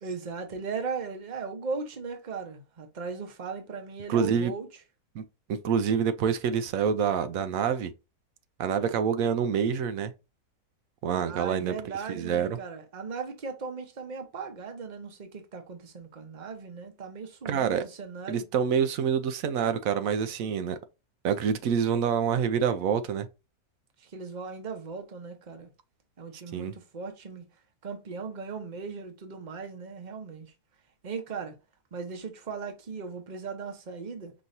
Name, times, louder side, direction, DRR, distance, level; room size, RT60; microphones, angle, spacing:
voice 1, 0.0-4.7 11.1-18.5 24.0-25.7 26.2-27.4 27.8-30.5 31.0-31.5 31.9-34.3, right 5 dB, 35° right, 0.9 m, -38 dB
voice 2, 4.1-4.5 5.1-5.2 5.5-7.9 8.6-10.1 11.0-11.7 12.1-12.6 17.4-17.8 18.3-20.8 21.2-23.3 26.5-26.7, right 7 dB, 70° right, 0.9 m, -26 dB
5.3 x 3.0 x 2.6 m
omnidirectional pair, 1.6 m